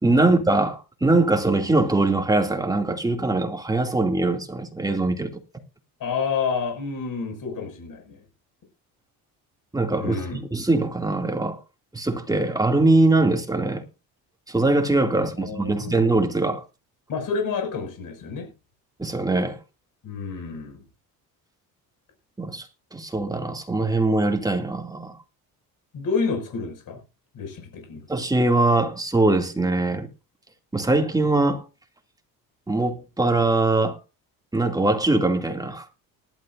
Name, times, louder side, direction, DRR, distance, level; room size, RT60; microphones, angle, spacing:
voice 1, 0.0-5.3 9.7-11.6 11.9-13.8 14.5-16.6 19.0-19.6 22.4-25.1 28.1-30.1 30.7-31.6 32.7-34.0 34.5-35.9, right 2 dB, 10° right, 2.5 m, -22 dB
voice 2, 6.0-8.2 10.0-10.4 15.1-16.1 17.1-18.5 20.0-20.8 25.9-27.0 27.3-28.0, left 5 dB, 60° left, 6.1 m, -29 dB
18.5 x 12.0 x 2.6 m
cardioid pair, 100°, 38 cm